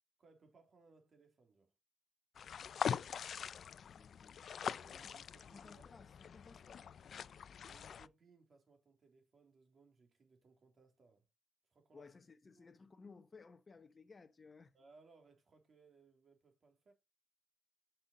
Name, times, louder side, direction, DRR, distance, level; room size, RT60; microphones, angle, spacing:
voice 1, 0.2-1.7 4.6-6.0 7.6-11.3 11.7-12.1 12.6-12.7 14.7-16.9, right 4 dB, 50° right, 2.9 m, -66 dB
sound 1, 2.3-8.1, left 7 dB, 60° left, 0.4 m, -43 dB
voice 2, 3.8-4.5 5.5-6.9 11.9-14.7, left 4 dB, 35° left, 0.9 m, -59 dB
5.7 x 5.4 x 5.3 m
cardioid pair, 75°, 0 cm